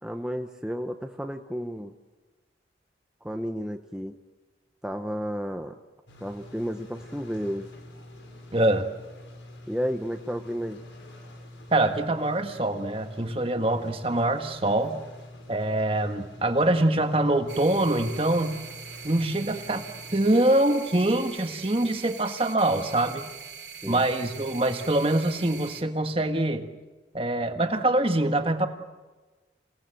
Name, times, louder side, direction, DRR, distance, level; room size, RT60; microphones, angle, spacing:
voice 1, 0.0-1.9 3.2-4.1 4.8-5.7 6.2-7.7 9.7-10.8 23.8-24.0, equal, 5° right, 4 dB, 0.8 m, -32 dB
sound 1, 6.1-20.1, left 1 dB, 85° left, 5.5 m, -46 dB
voice 2, 8.5-8.9 11.7-15.0 15.5-18.6 19.0-19.8 20.1-23.3 23.8-26.7 27.1-28.7, right 1 dB, 30° right, 7 dB, 1.5 m, -24 dB
sound 2, 17.5-25.8, right 7 dB, 70° right, 2.7 m, -43 dB
28.0 x 18.0 x 7.8 m, 1.2 s
head